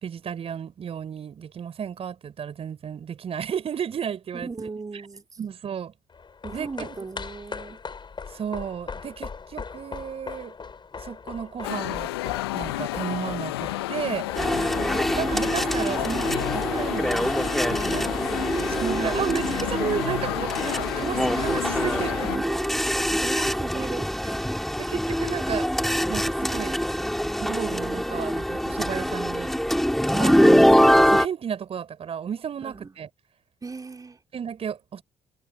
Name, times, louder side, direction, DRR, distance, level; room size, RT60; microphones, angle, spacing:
voice 1, 0.0-4.5 5.4-5.9 6.5-6.9 8.3-10.5 11.0-12.1 12.5-14.3 15.1-18.1 18.8-22.4 23.3-23.9 24.8-25.7 26.1-26.8 27.4-29.5 30.0-33.1 34.3-35.0, right 8 dB, 50° right, 4.9 m, -33 dB
voice 2, 4.3-5.4 6.4-7.8 14.6-15.0 18.5-19.5 22.4-24.5 32.6-32.9 33.6-34.2, right 4 dB, 30° right, 4.1 m, -36 dB
sound 1, 6.1-16.7 17.0-17.1, left 5 dB, 40° left, 5.4 m, -40 dB
sound 2, 11.6-22.4, left 18 dB, 80° left, 1.3 m, -31 dB
sound 3, 14.4-31.3, equal, ahead, 4.0 m, -24 dB
figure-of-eight pair, 40°, 13 cm